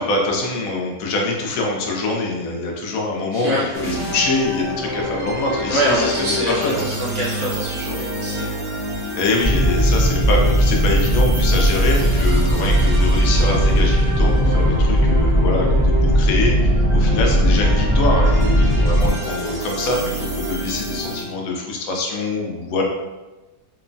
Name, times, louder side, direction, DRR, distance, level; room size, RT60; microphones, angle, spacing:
voice 1, 0.0-6.8 9.2-22.8, left 2 dB, 70° left, 0 dB, 0.9 m, -24 dB
voice 2, 3.3-4.1 5.7-8.6, equal, 55° right, -7 dB, 1.0 m, -24 dB
sound 1, 3.7-21.2, equal, 40° right, 0.5 m, -28 dB
sound 2, 9.4-19.1, equal, 10° left, 0.7 m, -17 dB
3.0 x 2.1 x 2.5 m, 1.1 s
omnidirectional pair, 1.7 m